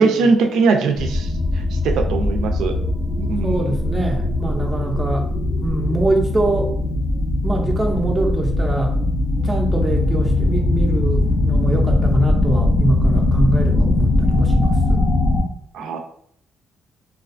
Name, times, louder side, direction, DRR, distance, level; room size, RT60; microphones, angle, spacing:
voice 1, 0.0-2.7 3.2-3.7 15.7-16.0, right 4 dB, 80° right, 5 dB, 0.3 m, -20 dB
sound 1, 1.0-15.4, left 2 dB, 60° left, 0.9 m, -20 dB
voice 2, 3.4-5.3 5.6-6.7 7.4-9.0 9.4-15.0, right 2 dB, 15° right, 0 dB, 0.4 m, -23 dB
2.3 x 2.3 x 2.4 m, 0.67 s
cardioid pair, 90°, 0 cm